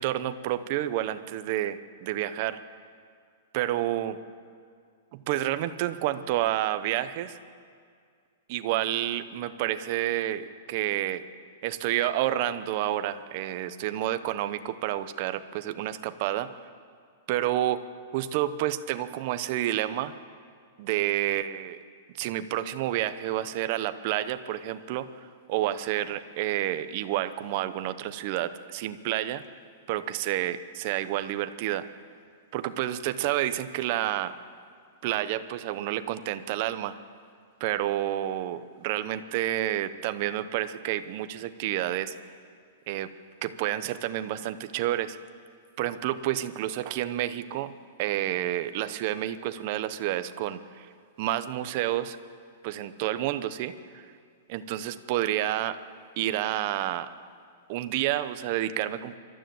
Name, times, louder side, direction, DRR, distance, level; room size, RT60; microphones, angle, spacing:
voice 1, 0.0-2.6 3.5-4.2 5.1-7.4 8.5-11.2 11.6-16.5 17.3-17.9 18.1-20.1 20.8-21.8 22.2-29.4 29.9-31.9 32.5-34.3 35.0-37.0 37.6-42.2 42.9-43.1 43.4-45.2 45.8-47.7 48.0-50.9 51.2-52.2 52.6-54.1 54.5-55.8 56.2-57.1 57.7-59.2, right 13 dB, 40° right, 11 dB, 0.8 m, -29 dB
26.5 x 12.5 x 7.8 m, 2.2 s
hypercardioid pair, 165°, 0 cm